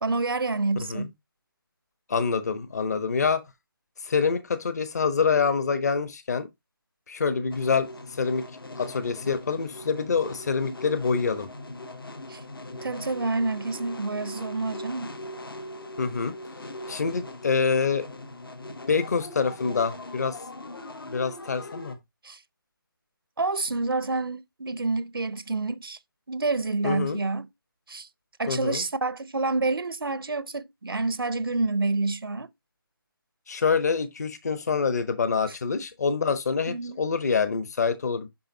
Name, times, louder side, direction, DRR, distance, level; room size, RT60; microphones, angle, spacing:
voice 1, 0.0-1.1 12.3-12.4 12.8-15.1 22.2-22.4 23.4-26.0 26.3-27.5 27.9-28.1 28.4-32.5 36.7-37.0, right 3 dB, 70° right, 0.7 m, -28 dB
voice 2, 0.8-1.1 2.1-3.4 4.0-6.5 7.1-8.4 8.8-11.5 16.0-16.3 16.9-18.1 18.9-20.4 21.1-22.0 26.8-27.2 28.5-28.8 33.5-38.3, left 5 dB, 45° left, 1.0 m, -26 dB
sound 1, 7.5-22.0, left 1 dB, 70° left, 1.2 m, -40 dB
10.0 x 3.7 x 2.7 m
figure-of-eight pair, 155°, 12 cm